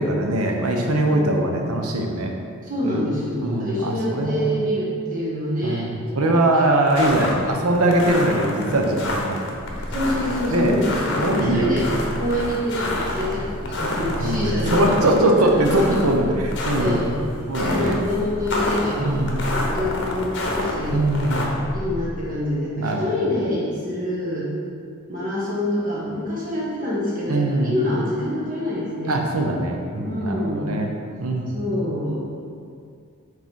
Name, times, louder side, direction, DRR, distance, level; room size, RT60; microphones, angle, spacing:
voice 1, 0.0-2.3 2.8-3.1 3.4-4.6 5.6-9.4 9.9-10.0 10.5-10.8 11.2-11.8 14.2-17.0 17.5-18.0 19.0-19.5 20.9-21.6 22.8-23.1 27.3-27.7 29.1-30.9 31.2-31.6, right 1 dB, 80° right, 1 dB, 0.8 m, -21 dB
voice 2, 1.1-1.6 2.6-5.9 6.5-6.7 7.0-7.2 9.9-15.0 15.4-15.6 15.9-16.0 16.8-17.2 17.5-19.3 19.7-21.0 21.7-24.5 25.1-29.2 30.0-30.8 31.5-32.2, left 1 dB, 35° right, -6 dB, 1.5 m, -26 dB
sound 1, 6.9-21.4, left 1 dB, 50° left, 0.8 m, -28 dB
sound 2, 9.5-22.2, equal, 10° left, 0.4 m, -33 dB
5.1 x 3.9 x 5.3 m, 2.3 s
head